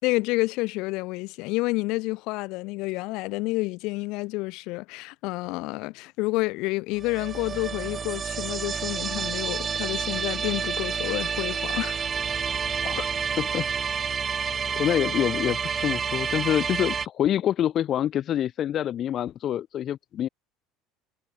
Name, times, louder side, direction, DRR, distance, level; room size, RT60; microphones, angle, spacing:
voice 1, 0.0-12.1, left 23 dB, 65° left, 3.7 m, -29 dB
sound 1, 7.0-17.1, right 6 dB, 25° right, 6.0 m, -29 dB
voice 2, 14.8-20.3, left 11 dB, 40° left, 2.4 m, -26 dB
cardioid pair, 145°, 0 cm